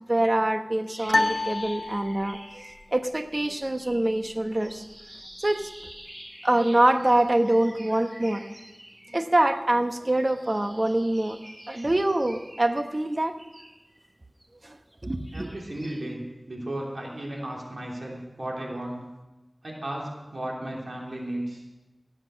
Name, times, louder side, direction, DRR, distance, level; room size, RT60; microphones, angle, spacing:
voice 1, 0.1-2.6 2.9-4.8 5.4-5.7 6.4-8.4 9.1-11.4 11.7-13.3 14.6-14.8 15.0-15.5, right 1 dB, 45° right, 7 dB, 1.1 m, -24 dB
sound 1, 0.9-3.1 3.3-9.6 10.0-14.5 14.9-16.2, right 1 dB, 30° right, 1.7 m, -48 dB
sound 2, 1.1-2.6, left 2 dB, 70° left, 0.6 m, -27 dB
voice 2, 15.3-19.0 19.6-21.6, right 1 dB, 85° right, -2 dB, 3.2 m, -34 dB
17.5 x 7.9 x 6.3 m, 1.1 s
wide cardioid pair, 40°, 0 cm